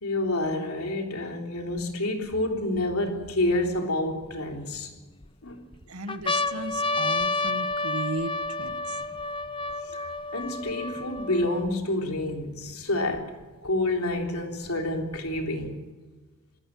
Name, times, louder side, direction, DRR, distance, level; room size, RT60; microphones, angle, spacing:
voice 1, 0.0-4.9 5.4-5.6 9.9-10.0 10.3-13.3 13.6-15.8, left 1 dB, 70° left, 3.6 m, -28 dB
sound 1, 1.8-1.9 2.5-3.8 4.5-5.3 5.7-5.8 6.1-11.7 12.4-12.5 12.7-13.7 14.6-15.7, left 2 dB, 25° left, 0.8 m, -30 dB
voice 2, 5.9-9.0, right 2 dB, 75° right, 1.7 m, -35 dB
26.5 x 13.5 x 7.8 m
head